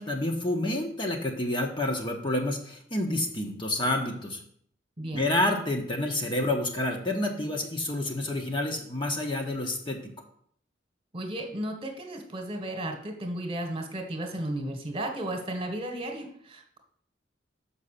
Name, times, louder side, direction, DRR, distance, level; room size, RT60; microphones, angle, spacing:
voice 1, 0.0-4.4 5.1-10.0, left 1 dB, 25° left, 2 dB, 1.1 m, -29 dB
voice 2, 5.0-5.3 11.1-16.8, right 1 dB, 30° right, 4 dB, 1.5 m, -34 dB
6.7 x 5.6 x 6.6 m, 0.62 s
head